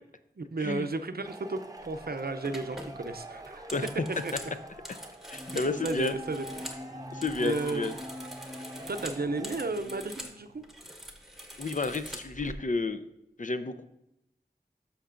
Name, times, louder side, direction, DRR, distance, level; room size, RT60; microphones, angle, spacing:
voice 1, 0.4-3.7 4.2-4.5 5.5-6.6 7.4-8.1 8.9-10.6, right 3 dB, 70° right, 9 dB, 0.5 m, -34 dB
Male speech man speaking / Shout / Clapping, 1.2-9.7, right 1 dB, 20° right, 0.7 m, -46 dB
sound 1, 1.8-2.0 2.4-6.8 7.1-10.4 10.6-12.5, equal, ahead, 1.1 m, -44 dB
voice 2, 5.3-6.1 7.1-7.9 11.6-13.0 13.4-13.8, left 3 dB, 50° left, 10 dB, 0.5 m, -31 dB
sound 2, 5.3-11.3, left 1 dB, 35° left, 1.0 m, -45 dB
12.5 x 5.8 x 2.5 m, 0.80 s
wide cardioid pair, 45°, 17 cm